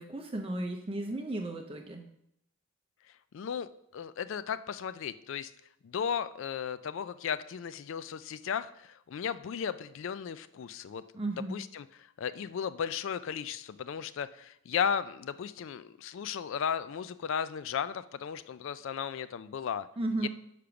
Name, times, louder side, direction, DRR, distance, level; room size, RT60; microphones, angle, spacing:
voice 1, 0.0-2.0 11.1-11.6 20.0-20.3, right 2 dB, 25° right, 4 dB, 0.6 m, -34 dB
voice 2, 3.3-5.5 5.8-11.0 11.3-19.9 20.2-20.3, left 7 dB, 55° left, 14 dB, 0.3 m, -35 dB
6.7 x 5.0 x 5.8 m, 0.76 s
head